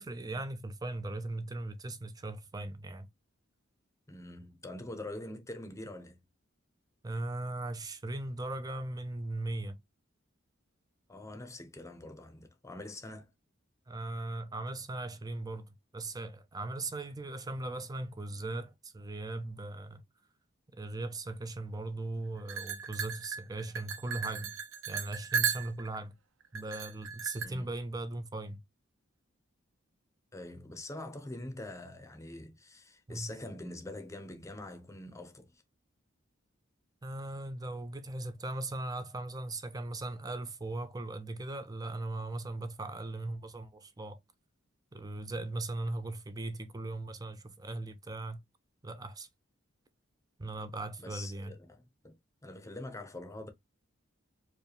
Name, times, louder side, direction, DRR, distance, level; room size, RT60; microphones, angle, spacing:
voice 1, 0.0-3.1 7.0-9.8 13.9-20.0 20.7-24.6 24.9-26.1 26.5-28.6 33.1-33.3 37.0-44.2 44.9-48.4 48.8-49.3 50.4-51.5, right 2 dB, 20° right, 0.5 m, -38 dB
voice 2, 4.1-6.2 11.1-13.3 27.4-27.7 30.3-35.5 51.0-53.5, left 1 dB, 15° left, 0.7 m, -44 dB
sound 1, 22.5-26.0 26.5-27.5, right 7 dB, 75° right, 0.5 m, -35 dB
4.7 x 2.3 x 3.3 m
head